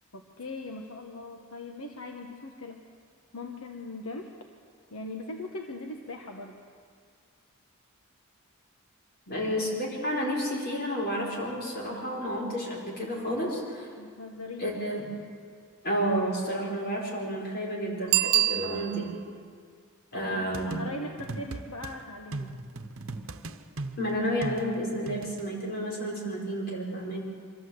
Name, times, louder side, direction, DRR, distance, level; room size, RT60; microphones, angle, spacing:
voice 1, 0.1-2.8 3.3-4.3 4.9-6.5 9.3-9.5 14.0-14.7 20.1-22.6, left 2 dB, 75° left, 2 dB, 1.3 m, -40 dB
voice 2, 9.3-13.9 14.6-15.1 15.8-19.1 20.1-20.8 24.0-27.2, equal, 45° left, -3 dB, 5.2 m, -31 dB
Bicycle bell, 18.1-19.3 24.7-24.8, right 14 dB, 45° right, 0.5 m, -25 dB
sound 1, 20.5-21.9 22.3-25.4, right 2 dB, 65° right, 1.0 m, -38 dB
24.5 x 14.5 x 7.9 m, 2.1 s
head